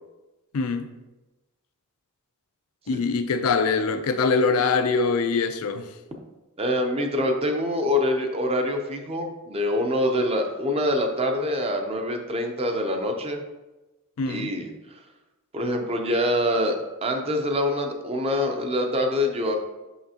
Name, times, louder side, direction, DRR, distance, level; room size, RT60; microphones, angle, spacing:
voice 1, 0.5-0.9 2.9-5.9 14.2-14.5, left 4 dB, 70° left, 0.4 m, -23 dB
voice 2, 6.6-13.4 14.3-14.7 15.5-19.6, left 1 dB, 25° right, 0.6 m, -25 dB
5.7 x 5.7 x 2.8 m
head